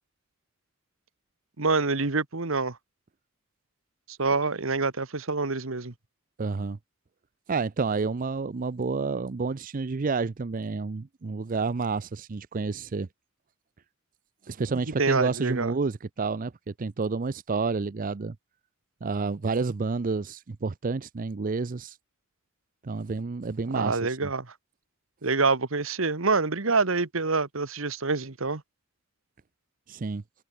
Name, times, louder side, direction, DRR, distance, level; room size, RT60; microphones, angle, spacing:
voice 1, 1.6-2.8 4.2-5.9 15.0-15.7 23.7-24.5 25.2-28.6, right 4 dB, 70° right, 1.5 m, -26 dB
voice 2, 6.4-6.8 7.5-13.1 14.4-18.4 19.0-22.0 22.8-24.3 29.9-30.2, right 4 dB, 40° right, 0.5 m, -29 dB
head